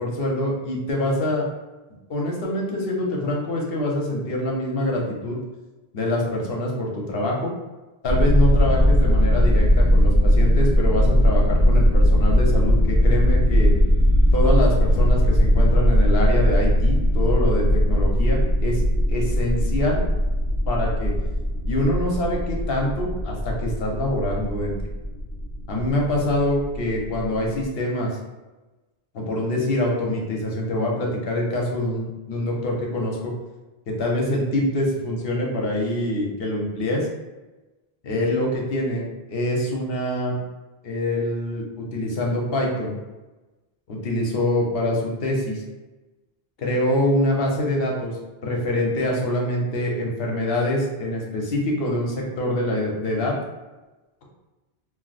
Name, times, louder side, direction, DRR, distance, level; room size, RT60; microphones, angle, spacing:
voice 1, 0.0-1.5 2.1-5.4 5.9-7.5 8.0-13.7 14.3-18.8 19.1-20.0 20.7-21.1 21.6-24.8 25.7-28.2 29.1-33.3 33.9-37.1 38.0-39.0 39.3-40.4 40.8-43.0 43.9-45.6 46.6-48.1 48.4-53.4, left 1 dB, 70° left, -1 dB, 0.9 m, -25 dB
sound 1, 8.1-27.7, equal, 60° right, 1.2 m, -19 dB
2.6 x 2.0 x 3.9 m, 1.1 s
omnidirectional pair, 1.0 m